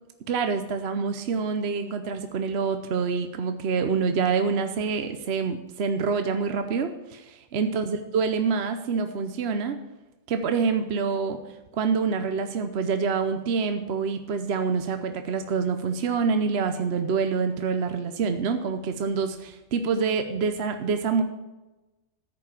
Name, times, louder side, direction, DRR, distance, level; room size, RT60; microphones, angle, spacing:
voice 1, 0.3-9.8 10.3-11.4 11.7-21.2, right 5 dB, 60° right, 7 dB, 0.9 m, -26 dB
14.0 x 5.4 x 8.3 m, 1.1 s
omnidirectional pair, 1.3 m